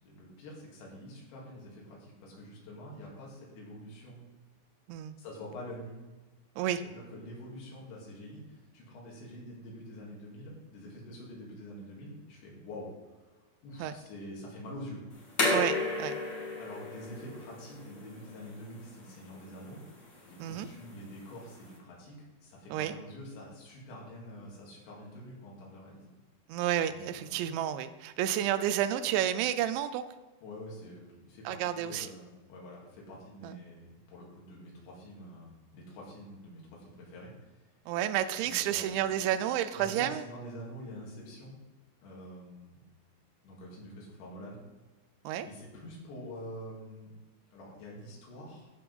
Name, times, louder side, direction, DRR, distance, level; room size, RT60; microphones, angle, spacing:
voice 1, 0.0-4.2 5.2-5.9 6.8-13.2 13.6-15.0 16.6-19.8 20.2-26.1 26.9-27.3 30.4-37.6 38.4-39.0 39.7-41.6 42.0-42.8 43.4-44.6 45.4-47.1 47.5-48.7, equal, 75° left, -4 dB, 4.8 m, -46 dB
sound 1, 15.1-21.8, left 2 dB, 45° left, 1.3 m, -35 dB
voice 2, 15.5-16.1 20.4-20.7 22.7-22.9 26.5-30.0 31.5-32.1 33.4-33.6 37.9-40.2 45.2-45.5, right 11 dB, 85° right, 11 dB, 2.9 m, -30 dB
14.0 x 4.8 x 5.4 m, 1.2 s
omnidirectional pair, 5.2 m